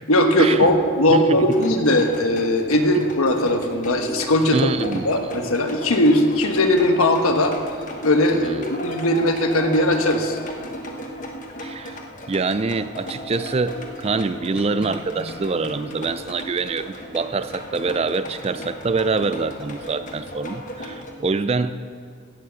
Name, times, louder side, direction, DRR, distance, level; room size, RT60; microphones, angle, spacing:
voice 1, 0.1-4.6 4.9-7.5 8.0-10.4, left 1 dB, 85° left, 5 dB, 1.2 m, -19 dB
voice 2, 1.1-1.5 4.5-5.1 8.3-8.7 11.6-12.0 12.3-21.7, right 4 dB, 30° right, 13 dB, 0.3 m, -25 dB
sound 1, 1.5-21.1, equal, 35° left, 1.1 m, -36 dB
17.5 x 6.4 x 7.0 m, 2.2 s
head